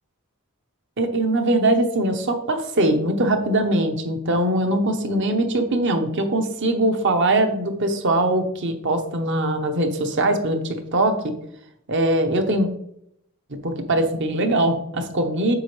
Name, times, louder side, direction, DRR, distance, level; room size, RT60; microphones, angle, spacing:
voice 1, 1.0-11.3 11.9-12.7 13.6-15.5, right 1 dB, 55° right, 5 dB, 1.0 m, -21 dB
7.6 x 5.1 x 3.2 m, 0.74 s
head